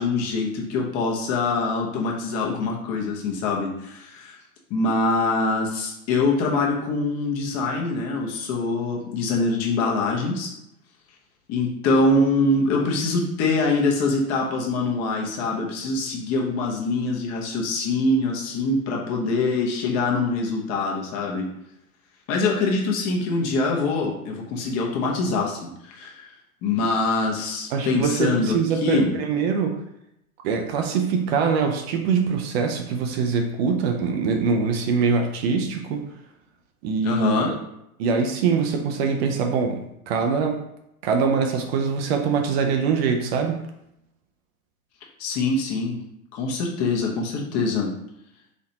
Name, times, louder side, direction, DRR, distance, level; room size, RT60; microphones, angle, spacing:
voice 1, 0.0-4.4 4.7-10.5 11.5-21.5 22.3-26.3 26.6-29.1 37.0-37.5 45.2-46.0 46.3-47.9, left 3 dB, 35° left, -1 dB, 0.9 m, -24 dB
voice 2, 27.7-29.8 30.4-36.0 36.8-37.6 38.0-40.6 41.0-43.7, right 5 dB, 45° right, 3 dB, 0.6 m, -23 dB
4.2 x 2.9 x 2.8 m, 0.81 s
figure-of-eight pair, 85°, 44 cm